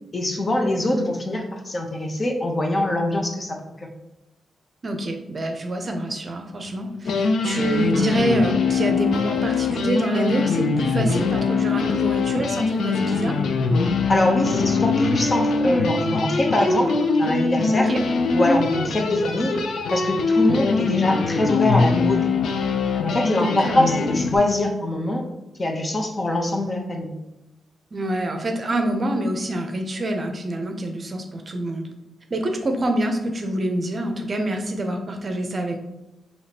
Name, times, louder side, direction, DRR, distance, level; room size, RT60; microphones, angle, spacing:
voice 1, 0.1-3.6 14.1-17.9 18.3-19.6 19.9-22.3 23.0-25.3 25.6-27.1, left 1 dB, 35° left, 2 dB, 0.7 m, -23 dB
voice 2, 4.8-13.4 17.7-18.0 23.4-23.9 27.9-31.9 32.3-35.8, right 1 dB, 40° right, 4 dB, 0.6 m, -26 dB
sound 1, 6.7-6.8 7.0-24.4, left 4 dB, 80° left, 0.4 m, -22 dB
5.0 x 3.0 x 2.8 m, 0.99 s
cardioid pair, 85°, 0 cm